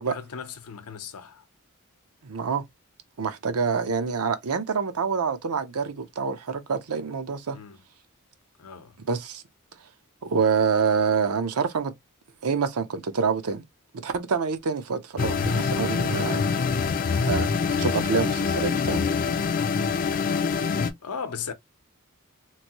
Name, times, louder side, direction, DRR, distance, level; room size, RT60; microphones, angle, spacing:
voice 1, 0.0-1.4 7.5-7.8 8.6-9.0 21.0-21.5, left 6 dB, 80° left, 0.7 m, -37 dB
voice 2, 2.2-2.6 3.2-7.6 9.1-9.4 10.2-11.9 12.4-13.6 14.0-16.4 17.1-17.5 17.8-19.0, right 5 dB, 80° right, 0.6 m, -26 dB
sound 1, 15.2-20.9, left 5 dB, 40° left, 0.4 m, -25 dB
3.1 x 2.6 x 2.8 m
head